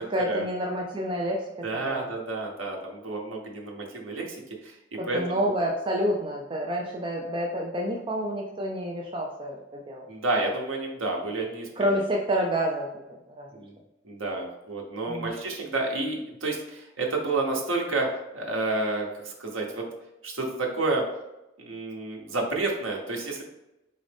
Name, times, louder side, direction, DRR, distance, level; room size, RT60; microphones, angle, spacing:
voice 1, 0.1-2.1 5.0-10.1 11.8-13.5 15.1-15.3, equal, 25° right, 0 dB, 0.4 m, -29 dB
voice 2, 1.6-5.5 10.1-12.0 13.5-13.7 14.0-19.9 20.2-21.0 21.6-23.4, right 2 dB, 85° right, 0 dB, 1.0 m, -30 dB
4.0 x 3.8 x 3.4 m, 0.93 s
head